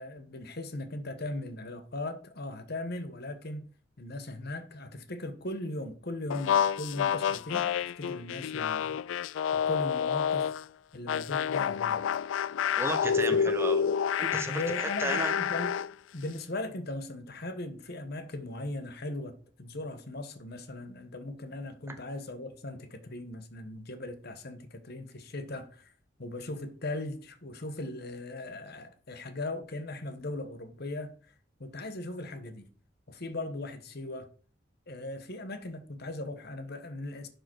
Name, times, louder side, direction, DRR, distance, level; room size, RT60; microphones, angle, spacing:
voice 1, 0.0-3.7 4.0-9.0 9.5-10.5 10.9-12.0 13.3-13.5 14.5-15.8 16.1-25.9 26.2-31.1 31.6-32.7 33.1-34.3 34.9-37.3, left 2 dB, 55° left, 1.2 m, -38 dB
sound 1, 6.3-10.6 11.1-15.9, left 8 dB, 75° left, 0.3 m, -29 dB
voice 2, 12.8-13.8 14.2-15.3, right 2 dB, 15° right, 0.9 m, -33 dB
11.0 x 5.0 x 4.6 m
head